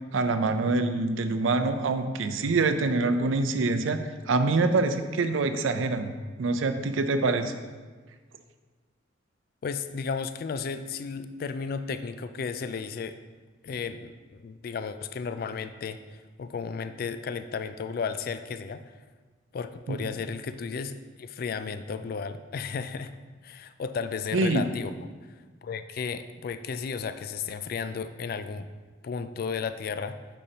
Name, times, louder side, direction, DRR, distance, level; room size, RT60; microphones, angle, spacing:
voice 1, 0.1-4.0 4.3-6.1 6.4-7.5 19.9-20.0 24.3-24.6, right 3 dB, 80° right, 9 dB, 0.5 m, -25 dB
voice 2, 9.6-13.2 13.6-18.8 19.5-23.1 23.4-24.9 25.6-28.7 29.0-30.2, left 5 dB, 50° left, 11 dB, 0.3 m, -34 dB
8.4 x 5.3 x 2.8 m, 1.4 s
head